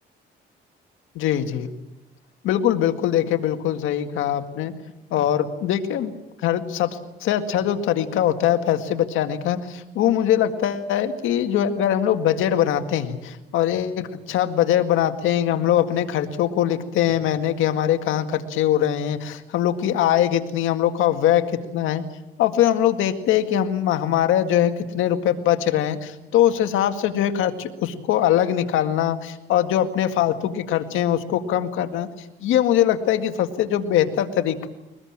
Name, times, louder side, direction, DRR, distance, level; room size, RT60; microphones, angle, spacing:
voice 1, 1.2-1.7 2.4-4.7 5.1-6.1 6.4-22.0 22.4-32.1 32.4-34.7, left 11 dB, 90° left, 7 dB, 2.0 m, -22 dB
22.5 x 21.0 x 8.9 m, 0.96 s
cardioid pair, 90°, 20 cm